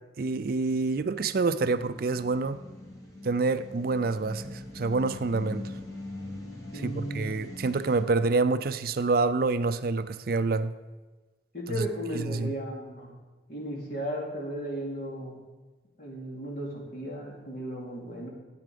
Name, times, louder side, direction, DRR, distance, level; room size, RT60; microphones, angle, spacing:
voice 1, 0.2-2.6 3.2-5.6 6.7-10.7 11.7-11.9 12.1-12.5, right 3 dB, 50° right, 12 dB, 0.4 m, -27 dB
sound 1, 0.8-8.0, left 2 dB, 20° left, 1.8 m, -43 dB
voice 2, 6.7-7.3 11.5-13.1 13.5-15.4 16.0-18.3, equal, 50° left, -2 dB, 2.8 m, -35 dB
13.0 x 8.4 x 5.1 m, 1.2 s
head